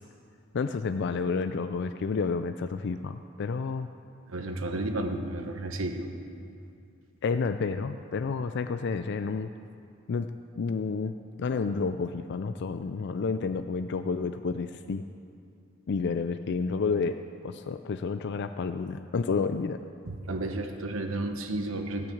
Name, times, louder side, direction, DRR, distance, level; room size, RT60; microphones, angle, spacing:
voice 1, 0.5-3.9 7.2-9.5 10.1-10.3 10.6-15.0 15.9-17.1 17.4-19.8, left 4 dB, 55° left, 9 dB, 0.4 m, -30 dB
voice 2, 4.3-6.1 20.1-22.1, right 2 dB, 70° right, 5 dB, 1.1 m, -32 dB
17.5 x 6.0 x 8.6 m, 2.5 s
head